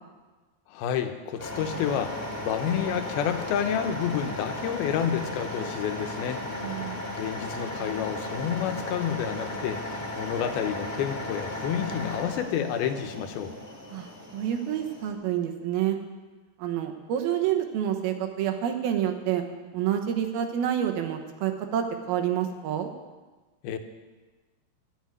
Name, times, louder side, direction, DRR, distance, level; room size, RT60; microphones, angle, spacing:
voice 1, 0.7-6.4 7.2-9.8 10.2-13.5 23.6-23.8, left 8 dB, 80° left, 7 dB, 2.6 m, -29 dB
sound 1, 1.4-15.1, left 1 dB, 5° right, 1.7 m, -35 dB
voice 2, 6.6-7.0 13.9-16.0 16.6-19.4 19.7-22.9, right 10 dB, 75° right, 5 dB, 2.8 m, -28 dB
13.0 x 6.3 x 9.4 m, 1.3 s
omnidirectional pair, 4.5 m